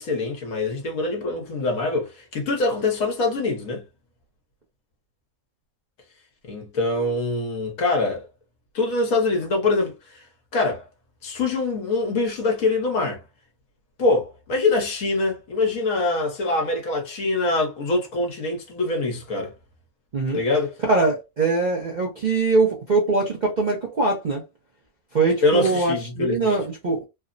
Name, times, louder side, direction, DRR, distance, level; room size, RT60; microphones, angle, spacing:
voice 1, 0.0-3.8 6.4-8.3 8.7-10.2 10.5-10.8 11.2-13.2 14.0-19.5 20.3-20.7 25.4-26.6, left 3 dB, 65° left, 1.3 m, -24 dB
voice 2, 20.8-24.4 25.1-27.0, right 3 dB, 50° right, 0.5 m, -22 dB
3.3 x 2.0 x 2.5 m
omnidirectional pair, 1.6 m